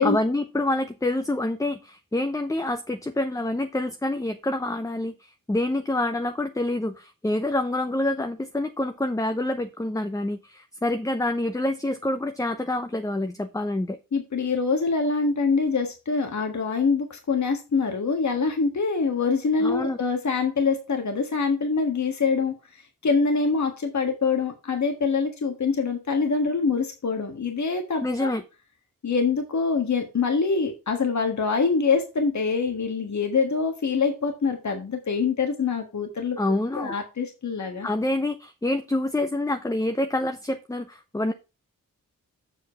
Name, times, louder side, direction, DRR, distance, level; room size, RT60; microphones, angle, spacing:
voice 1, 0.0-14.0 19.6-20.0 28.0-28.4 36.4-36.9 37.8-41.3, left 1 dB, 10° left, 8 dB, 0.7 m, -27 dB
voice 2, 14.1-28.3 29.0-37.9, left 4 dB, 55° left, 4 dB, 1.6 m, -25 dB
7.6 x 4.5 x 5.7 m, 0.29 s
cardioid pair, 60°, 34 cm